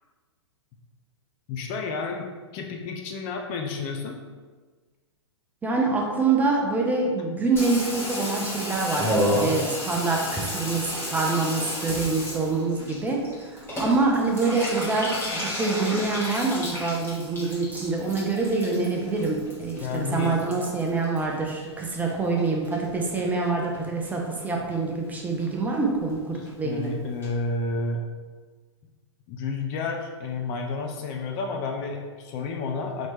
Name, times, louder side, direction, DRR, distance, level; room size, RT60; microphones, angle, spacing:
voice 1, 1.5-2.3 2.5-4.2 19.8-20.4 26.3-28.0 29.3-33.1, left 4 dB, 35° left, 2 dB, 0.5 m, -31 dB
voice 2, 5.6-26.9, right 3 dB, 10° right, -1 dB, 0.6 m, -26 dB
Water tap faucet / Bathtub (filling or washing), 7.6-22.1 22.4-23.1 23.4-23.5 23.7-23.8 24.0-24.4 24.7-24.8 25.0-25.1 25.4-25.5 25.7-25.8 26.1-26.2 26.5-26.6 26.8-26.9 27.2-27.3, equal, 15° left, 1.3 m, -32 dB
4.1 x 3.0 x 3.3 m, 1.4 s
figure-of-eight pair, 110°, 15 cm